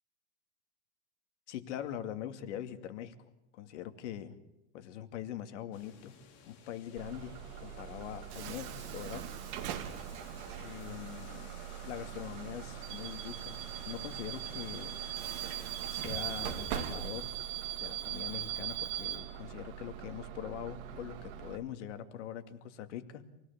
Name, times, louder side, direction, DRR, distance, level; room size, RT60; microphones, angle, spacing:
voice 1, 1.5-4.4 4.7-6.1 6.4-9.3 10.6-11.5 11.8-13.6 13.9-15.0 15.9-17.3 17.7-23.3, left 10 dB, 85° left, 8 dB, 2.5 m, -43 dB
sound 1, 5.7-16.1, left 7 dB, 45° left, 4.3 m, -56 dB
Bus / Alarm, 7.0-21.6, right 11 dB, 55° right, 2.8 m, -40 dB
27.5 x 18.0 x 7.4 m, 0.92 s
supercardioid pair, 165°, 35 cm